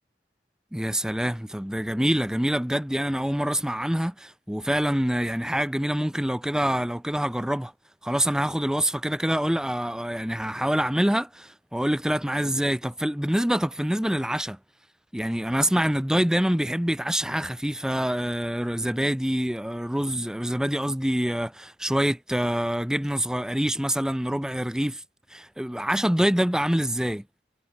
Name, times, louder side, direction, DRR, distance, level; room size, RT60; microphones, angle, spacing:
voice 1, 0.7-7.7 8.0-14.6 15.1-25.0 25.3-27.2, equal, 5° right, 0.6 m, -26 dB
head